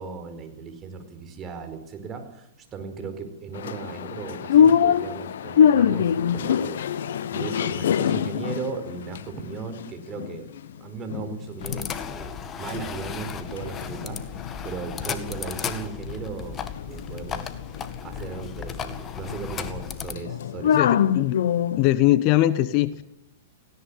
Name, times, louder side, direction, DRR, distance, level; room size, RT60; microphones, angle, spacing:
voice 1, 0.0-6.9 7.2-10.5 10.8-17.5 18.0-20.8, right 5 dB, 25° right, 7 dB, 4.8 m, -37 dB
sound 1, 3.5-10.7 11.1-12.1 12.3-21.9, left 8 dB, 70° left, 1.2 m, -25 dB
sound 2, 11.6-20.2, left 7 dB, 25° left, 2.0 m, -35 dB
voice 2, 20.7-21.4 21.8-23.0, left 15 dB, 45° left, 16 dB, 1.1 m, -21 dB
18.0 x 17.0 x 9.9 m, 0.80 s
hypercardioid pair, 115°, 0 cm